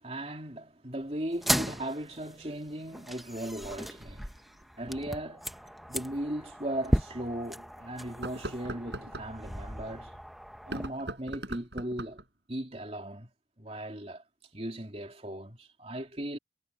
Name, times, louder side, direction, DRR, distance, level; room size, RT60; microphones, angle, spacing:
voice 1, 0.0-4.3 4.8-10.2 10.7-12.2 12.5-13.3 13.6-14.2 14.5-16.4, right 1 dB, 35° right, 3.4 m, -37 dB
sound 1, 1.3-10.9, equal, ahead, 0.9 m, -36 dB
sound 2, 6.1-6.2 6.8-6.9 8.1-9.3 10.6-12.3, right 1 dB, 70° right, 7.6 m, -40 dB
head